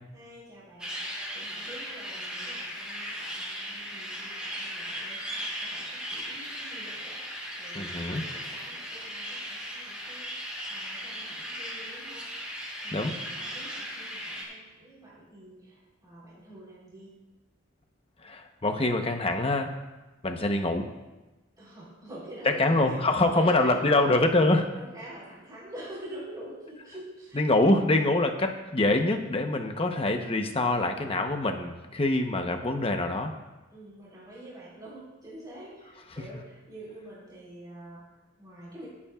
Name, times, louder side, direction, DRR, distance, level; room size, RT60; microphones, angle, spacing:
voice 1, 0.1-12.3 12.8-17.2 21.6-23.9 24.7-27.7 33.7-38.9, right 1 dB, 20° right, -8 dB, 3.9 m, -46 dB
sound 1, 0.8-14.4, equal, 5° right, 3.9 m, -37 dB
voice 2, 7.7-8.2 12.9-13.1 18.2-19.7 20.2-20.9 22.6-24.7 27.3-33.4, left 2 dB, 30° left, 4 dB, 1.0 m, -25 dB
25.0 x 8.5 x 2.5 m, 1.1 s
head